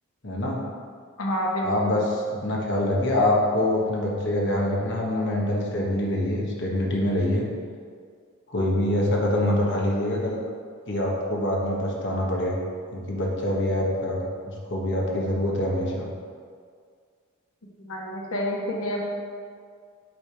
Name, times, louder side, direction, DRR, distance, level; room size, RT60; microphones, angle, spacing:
voice 1, 0.2-0.6 1.6-7.4 8.5-10.4 10.9-12.6 12.9-16.1, left 1 dB, 60° left, -2 dB, 1.4 m, -25 dB
voice 2, 1.2-1.9 8.6-8.7 17.8-19.0, equal, 80° left, -2 dB, 1.5 m, -29 dB
8.0 x 3.6 x 5.9 m, 2.1 s
head